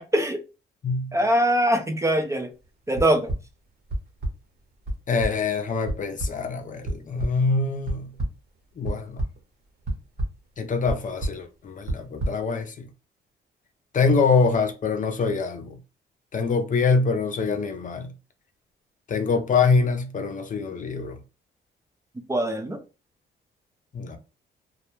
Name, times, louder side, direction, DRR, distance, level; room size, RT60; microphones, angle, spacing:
voice 1, 1.1-2.5 2.9-3.3 22.3-22.8, right 1 dB, 15° right, 0.4 m, -22 dB
sound 1, 2.9-3.4 3.9-4.3 4.9-5.0 5.2-5.3 5.9-6.0 6.2-6.3 6.9-7.3 7.9-8.3 8.9-9.4 9.9-10.3 10.9-11.0 11.2-11.4 11.9-12.3, right 1 dB, 55° right, 0.9 m, -26 dB
voice 2, 5.1-8.1 8.8-9.2 10.6-12.8 13.9-15.8 16.3-18.1 19.1-21.2 23.9-24.2, left 4 dB, 40° left, 0.5 m, -24 dB
2.3 x 2.1 x 2.9 m
cardioid pair, 90°, 20 cm